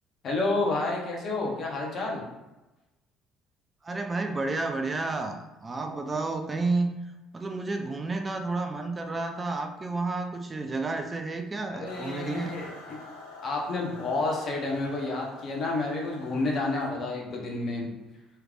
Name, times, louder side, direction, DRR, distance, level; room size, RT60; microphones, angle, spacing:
voice 1, 0.2-2.2 11.7-13.0 13.4-17.9, left 2 dB, 50° left, -1 dB, 1.0 m, -30 dB
voice 2, 3.8-6.9 7.3-12.5, right 3 dB, 30° right, 5 dB, 0.4 m, -31 dB
sound 1, 11.8-16.9, left 2 dB, 85° left, 0.8 m, -46 dB
3.3 x 3.1 x 2.4 m, 1.0 s
hypercardioid pair, 55°, 0 cm